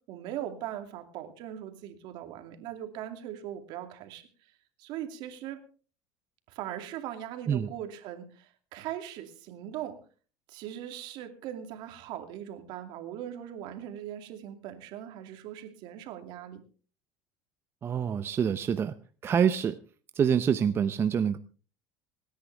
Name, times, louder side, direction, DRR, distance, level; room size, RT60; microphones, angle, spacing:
voice 1, 0.1-4.3 4.8-5.6 6.5-10.0 10.5-16.6, right 11 dB, 65° right, 7 dB, 2.5 m, -40 dB
voice 2, 17.8-18.9 19.2-19.8 20.1-21.4, right 8 dB, 30° right, 10 dB, 0.7 m, -26 dB
26.5 x 10.0 x 3.4 m, 0.38 s
supercardioid pair, 125°, 8 cm